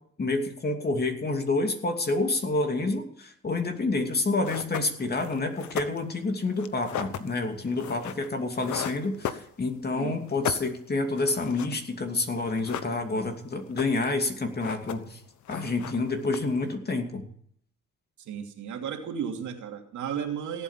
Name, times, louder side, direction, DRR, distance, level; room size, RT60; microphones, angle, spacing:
voice 1, 0.2-15.2 15.5-17.3, left 3 dB, 30° left, 4 dB, 2.7 m, -28 dB
sound 1, 4.0-4.1 4.4-9.9 10.2-12.1 12.4-13.3 13.6-14.2 14.4-15.2 15.4-16.7, left 9 dB, 70° left, 1.1 m, -36 dB
voice 2, 18.2-20.6, right 8 dB, 75° right, 3 dB, 2.8 m, -34 dB
17.5 x 8.3 x 7.4 m, 0.65 s
cardioid pair, 90°, 30 cm